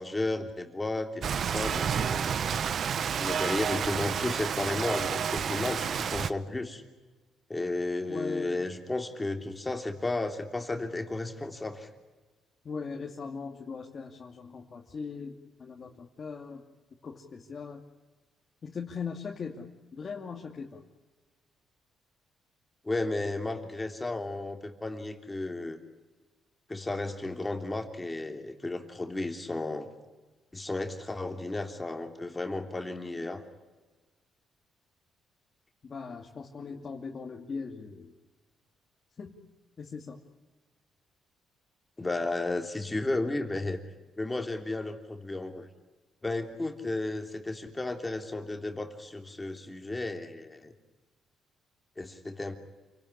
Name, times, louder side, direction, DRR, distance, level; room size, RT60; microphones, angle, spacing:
voice 1, 0.0-2.3 3.2-6.8 7.5-11.9 22.8-25.8 26.7-29.9 30.5-33.4 42.0-43.8 44.2-45.7 46.2-50.7 52.0-52.6, left 2 dB, 15° left, 4 dB, 3.1 m, -33 dB
Rain, 1.2-6.3, right 7 dB, 55° right, 0.9 m, -30 dB
voice 2, 8.1-8.6 12.6-16.6 17.0-17.8 18.6-20.8 35.8-38.1 39.2-39.4 39.8-40.2, left 5 dB, 45° left, 0 dB, 2.6 m, -39 dB
28.5 x 18.0 x 9.9 m, 1.2 s
cardioid pair, 90°, 0 cm